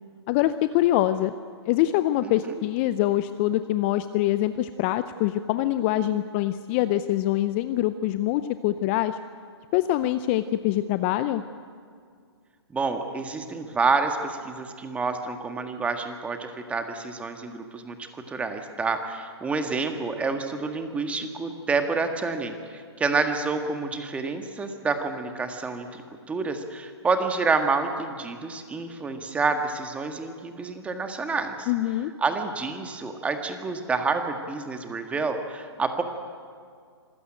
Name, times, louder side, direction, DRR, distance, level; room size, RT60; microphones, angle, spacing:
voice 1, 0.3-1.3 1.7-9.2 9.7-11.4 31.7-32.1, left 14 dB, 25° left, 12 dB, 0.5 m, -24 dB
voice 2, 12.7-31.7 32.2-36.0, right 4 dB, 10° right, 6 dB, 1.6 m, -28 dB
26.0 x 16.0 x 8.9 m, 2.1 s
hypercardioid pair, 140°, 14 cm